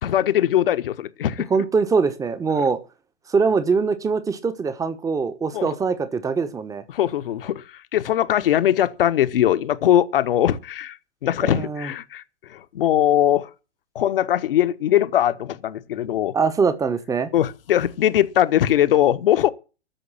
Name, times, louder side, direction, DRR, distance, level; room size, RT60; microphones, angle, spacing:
voice 1, 0.0-1.5 5.5-5.7 6.9-7.6 7.9-11.0 11.2-12.2 12.5-13.5 13.9-16.4 17.3-19.5, left 11 dB, 50° left, 1.2 m, -20 dB
voice 2, 1.5-2.8 3.3-6.8 11.4-11.9 16.3-17.3, right 5 dB, 10° right, 1.1 m, -22 dB
13.5 x 7.0 x 8.5 m
figure-of-eight pair, 115°, 35 cm